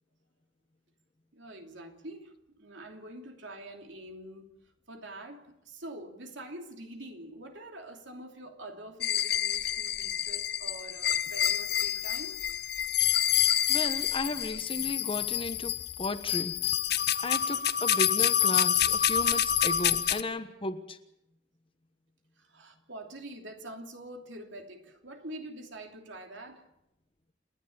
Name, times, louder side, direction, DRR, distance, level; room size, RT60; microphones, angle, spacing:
voice 1, 1.3-4.5 4.9-12.4 22.4-26.7, right 1 dB, 70° right, 3.0 m, -45 dB
sound 1, 9.0-20.2, left 10 dB, 55° left, 0.7 m, -28 dB
voice 2, 13.7-16.6 17.2-21.0, left 2 dB, 30° left, 1.2 m, -35 dB
29.0 x 10.5 x 8.8 m
head